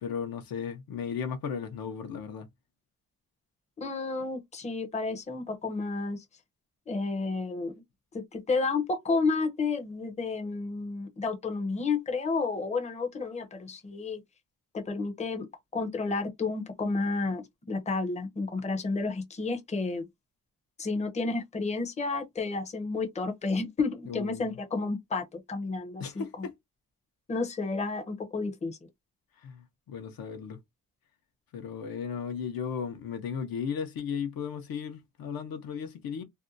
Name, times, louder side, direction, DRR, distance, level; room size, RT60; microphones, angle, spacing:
voice 1, 0.0-2.5 24.1-24.5 26.0-26.5 29.4-30.6 31.5-36.2, left 7 dB, 70° left, 0.7 m, -35 dB
voice 2, 3.8-6.2 6.9-7.7 8.1-14.2 14.7-15.5 15.7-20.1 20.8-26.5 27.3-28.8, left 3 dB, 20° left, 0.6 m, -31 dB
2.6 x 2.2 x 2.6 m
cardioid pair, 105°, 36 cm